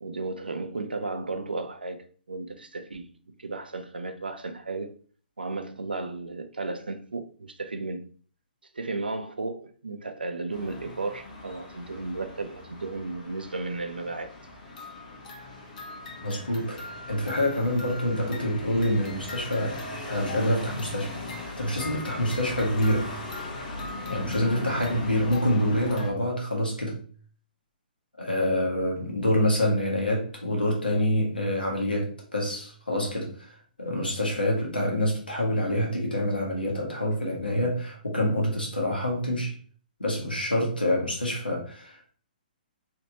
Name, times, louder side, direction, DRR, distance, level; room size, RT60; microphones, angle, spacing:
voice 1, 0.0-3.1 3.4-5.0 5.4-8.1 8.7-14.3, right 3 dB, 85° right, 0.5 m, -34 dB
sound 1, 10.5-26.1, left 2 dB, 55° left, 1.0 m, -38 dB
voice 2, 16.2-19.8 20.1-23.1 24.1-27.0 28.2-39.5 40.0-42.1, left 1 dB, 90° left, 1.4 m, -27 dB
3.3 x 2.9 x 2.8 m
figure-of-eight pair, 125°, 5 cm